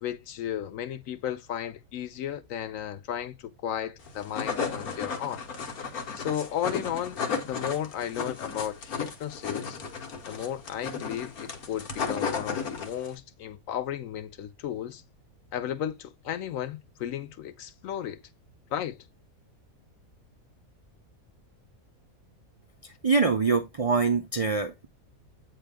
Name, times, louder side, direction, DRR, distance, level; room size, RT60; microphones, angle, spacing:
voice 1, 0.0-5.4 6.1-9.8 10.3-15.0 15.5-18.2 18.7-19.1, left 10 dB, 70° left, 1.0 m, -34 dB
sound 1, 4.1-13.1, left 5 dB, 85° left, 1.7 m, -34 dB
voice 2, 22.8-24.9, right 4 dB, 65° right, 0.3 m, -25 dB
8.2 x 3.4 x 3.4 m
omnidirectional pair, 1.5 m